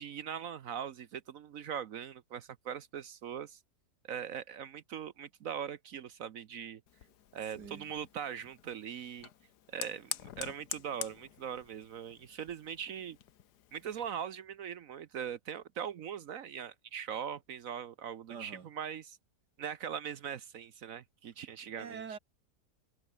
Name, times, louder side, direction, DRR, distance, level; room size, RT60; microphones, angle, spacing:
voice 1, 0.0-3.6 4.1-6.8 7.3-9.3 9.7-13.2 13.7-19.2 19.6-22.0, right 8 dB, 60° right, 1.1 m, -41 dB
Fire, 6.9-14.1, left 11 dB, 75° left, 1.5 m, -47 dB
voice 2, 7.6-7.9 18.3-18.7 21.8-22.2, right 6 dB, 80° right, 2.6 m, -44 dB
omnidirectional pair, 1.8 m